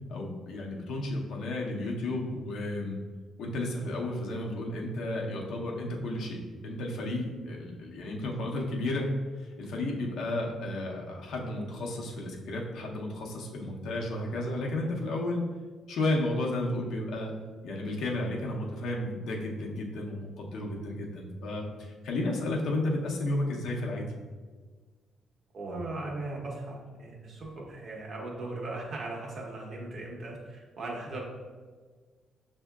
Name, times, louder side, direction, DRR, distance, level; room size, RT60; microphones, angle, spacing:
voice 1, 0.1-3.0 3.4-9.1 9.4-15.4 15.9-17.3 17.6-24.0, left 1 dB, 80° left, -1 dB, 0.7 m, -33 dB
voice 2, 25.5-31.2, right 2 dB, 55° right, -2 dB, 1.0 m, -38 dB
6.2 x 2.7 x 2.3 m, 1.5 s
cardioid pair, 90°, 0 cm